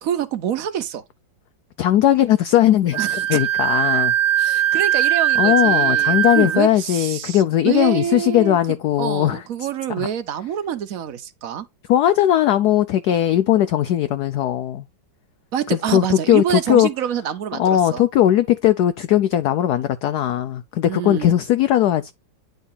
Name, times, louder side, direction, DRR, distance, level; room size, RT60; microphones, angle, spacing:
voice 1, 0.0-1.0 3.0-3.4 4.4-11.7 15.5-18.0 20.8-21.3, right 9 dB, 55° right, 1.2 m, -26 dB
voice 2, 1.8-4.1 5.4-9.4 10.0-10.1 11.9-14.8 15.9-16.9 17.6-22.1, left 12 dB, 70° left, 1.0 m, -18 dB
Wind instrument woodwind instrument, 2.9-6.6, right 11 dB, 85° right, 1.6 m, -20 dB
9.9 x 3.9 x 4.0 m
omnidirectional pair, 2.0 m